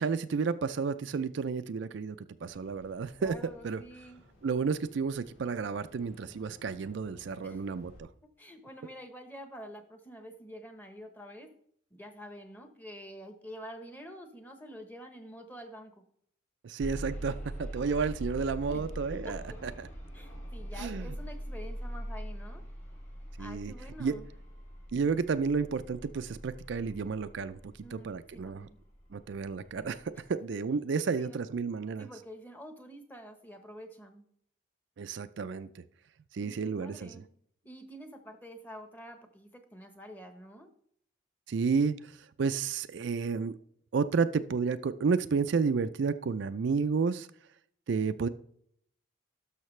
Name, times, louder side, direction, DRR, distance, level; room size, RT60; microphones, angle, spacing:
voice 1, 0.0-3.4 3.6-3.8 4.4-8.1 16.6-19.4 19.8-19.9 20.8-21.0 23.4-23.7 24.0-24.2 24.9-27.6 27.9-28.7 29.1-32.1 35.0-35.8 36.3-37.1 41.5-43.6 43.9-47.3 47.9-48.3, right 5 dB, 60° right, 11 dB, 0.4 m, -31 dB
sound 1, 2.4-8.0, equal, 75° left, 3.8 m, -58 dB
voice 2, 3.2-4.2 7.4-7.8 8.2-11.5 11.9-16.0 18.7-19.3 20.1-22.6 23.4-24.2 27.8-28.8 31.2-31.5 32.0-34.2 36.4-37.3 37.6-40.7, equal, 10° left, 6 dB, 0.9 m, -47 dB
sound 2, 16.8-28.7 29.4-29.5 30.0-30.1, right 1 dB, 35° left, 2.3 m, -42 dB
12.5 x 5.6 x 3.2 m, 0.64 s
head